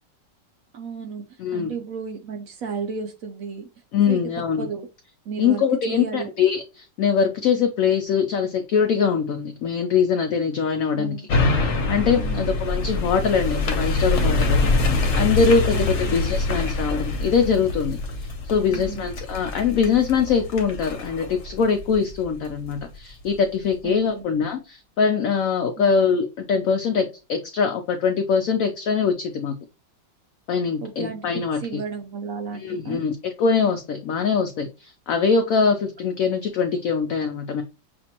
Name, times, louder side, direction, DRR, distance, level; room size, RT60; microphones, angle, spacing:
voice 1, 0.7-3.7 4.1-4.9 5.2-6.3 10.9-11.3 12.2-12.5 15.7-16.2 18.7-19.1 23.8-24.2 25.8-25.9 30.8-33.1, right 5 dB, 65° right, 4 dB, 0.9 m, -34 dB
voice 2, 1.4-1.8 3.9-4.7 5.4-11.1 11.6-18.0 18.4-29.5 30.5-31.6 32.6-37.6, left 6 dB, 75° left, 6 dB, 0.8 m, -23 dB
sound 1, 11.3-22.7 23.2-23.3, left 2 dB, 50° left, 1.0 m, -25 dB
6.6 x 2.5 x 2.8 m, 0.29 s
omnidirectional pair, 1.9 m